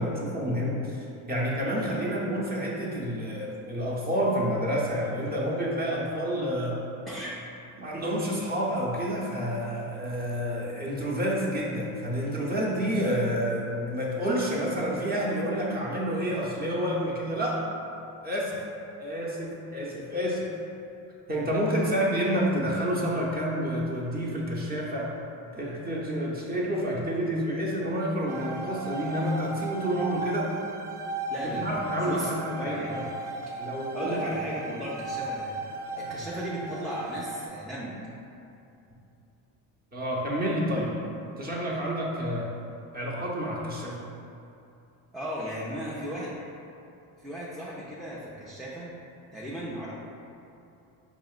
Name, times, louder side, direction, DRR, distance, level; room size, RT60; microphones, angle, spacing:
voice 1, 0.0-6.8 7.8-17.7 18.2-18.6 19.0-20.5 21.3-25.2 25.5-30.5 31.4-33.0 33.6-34.4 39.9-41.0 41.4-42.5 42.9-44.0, equal, 20° right, -4 dB, 0.7 m, -29 dB
sound 1, 28.3-37.5, right 2 dB, 60° right, 0.5 m, -36 dB
voice 2, 31.3-31.7 32.0-33.0 33.9-35.5 35.9-38.0 45.1-46.4 47.2-48.9 49.3-49.9, equal, ahead, -8 dB, 0.3 m, -36 dB
4.8 x 2.9 x 2.4 m, 2.7 s
cardioid pair, 95°, 44 cm